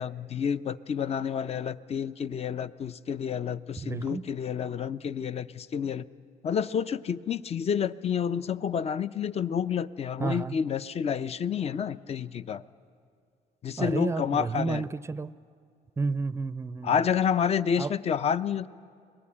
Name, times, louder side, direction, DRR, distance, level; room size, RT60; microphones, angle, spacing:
voice 1, 0.0-6.1 6.4-12.6 13.6-14.8 16.8-18.7, left 7 dB, 40° left, 14 dB, 0.7 m, -29 dB
voice 2, 3.8-4.3 10.2-10.6 13.8-15.3 16.0-17.1 17.8-17.9, right 4 dB, 15° right, 16 dB, 0.5 m, -31 dB
24.0 x 20.0 x 9.9 m, 2.2 s
cardioid pair, 110°, 17 cm